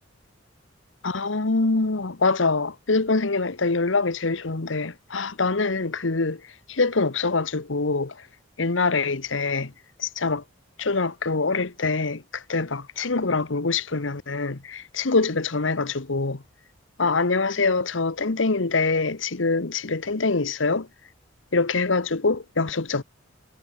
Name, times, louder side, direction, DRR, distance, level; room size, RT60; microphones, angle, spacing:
voice 1, 1.0-6.4 6.7-8.2 8.6-9.7 10.0-10.4 10.8-16.4 17.0-20.9 21.5-23.0, left 3 dB, 80° left, 1.2 m, -24 dB
head